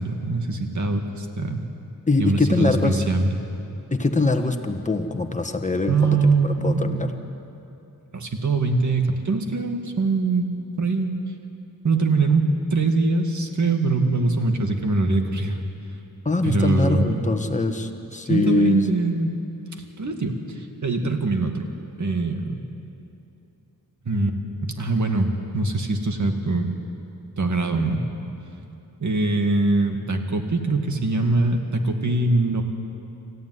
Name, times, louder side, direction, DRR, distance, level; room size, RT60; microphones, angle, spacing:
voice 1, 0.0-1.6 2.2-3.4 5.9-7.1 8.1-10.5 10.8-11.1 11.8-12.4 12.7-15.6 16.4-17.2 18.3-19.3 20.0-21.7 22.0-22.7 24.1-26.7 27.4-28.1 29.0-32.6, right 3 dB, 50° right, 4 dB, 2.2 m, -22 dB
voice 2, 2.1-3.0 3.9-7.1 16.2-18.8, left 3 dB, 20° left, 5 dB, 1.4 m, -23 dB
27.5 x 14.5 x 9.7 m, 2.8 s
wide cardioid pair, 145°, 36 cm